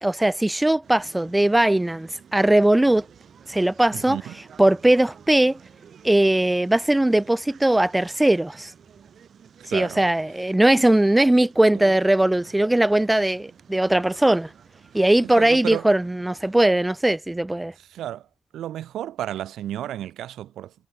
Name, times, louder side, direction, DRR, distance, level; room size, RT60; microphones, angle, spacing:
voice 1, 0.0-3.0 3.5-4.2 4.6-5.6 6.0-8.7 9.7-14.5 14.9-17.7, right 1 dB, 10° right, 0.4 m, -19 dB
sound 1, 0.8-16.6, right 8 dB, 55° right, 5.4 m, -51 dB
voice 2, 9.6-10.0 11.7-12.0 15.2-15.9 17.8-18.3 18.5-20.7, right 12 dB, 75° right, 0.8 m, -32 dB
cardioid pair, 90°, 0 cm